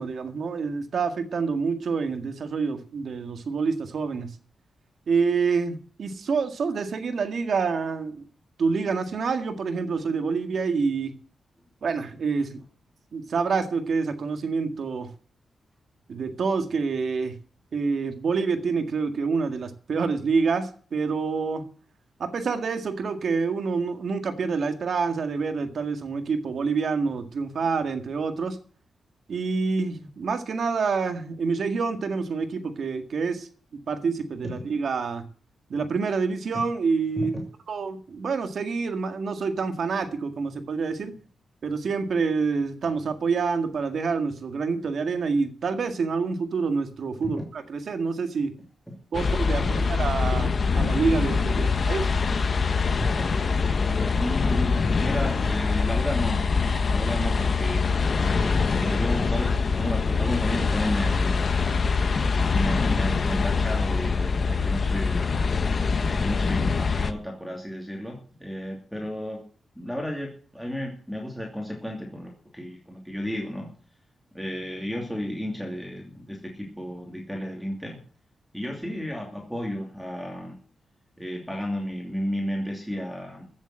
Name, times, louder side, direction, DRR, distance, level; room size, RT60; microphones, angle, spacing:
voice 1, 0.0-4.3 5.1-8.3 8.6-11.2 11.8-12.6 13.1-15.1 16.1-17.4 17.7-21.6 22.2-28.6 29.3-33.5 33.9-35.2 35.7-37.4 37.7-41.1 41.6-48.5 49.1-52.1, right 5 dB, 60° right, 7 dB, 1.9 m, -27 dB
sound 1, 49.1-67.1, left 4 dB, 40° left, 1.2 m, -24 dB
voice 2, 53.0-53.4 54.1-56.4 56.9-58.0 58.7-61.9 62.5-65.5 66.0-69.4 69.7-73.7 74.3-78.0 78.5-80.5 81.2-83.4, equal, ahead, 0 dB, 2.8 m, -33 dB
15.5 x 7.2 x 7.7 m, 0.42 s
wide cardioid pair, 140°, 0 cm